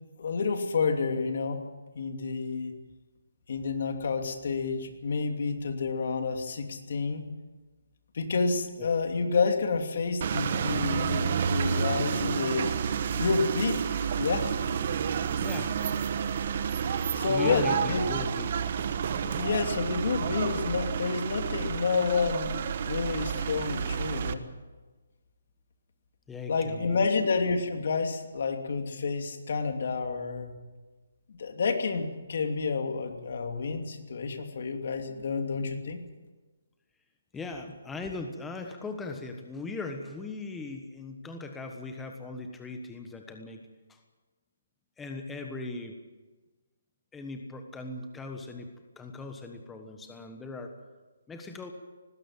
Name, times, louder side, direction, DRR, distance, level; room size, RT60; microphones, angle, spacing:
voice 1, 0.2-1.6 1.9-2.8 3.5-7.3 8.1-12.8 13.1-13.8 14.1-14.4 17.1-18.0 19.4-24.4 26.5-30.5 31.3-36.0, left 4 dB, 50° left, 5 dB, 2.8 m, -29 dB
sound 1, 10.2-24.3, right 7 dB, 40° right, 1.2 m, -30 dB
voice 2, 15.4-15.7 17.3-18.5 19.2-19.4 26.3-27.3 37.3-43.6 43.9-44.0 45.0-46.0 47.1-48.7 49.0-50.7 51.3-51.7, left 3 dB, 5° left, 4 dB, 1.3 m, -38 dB
19.5 x 16.0 x 8.8 m, 1.3 s
hypercardioid pair, 170°, 0 cm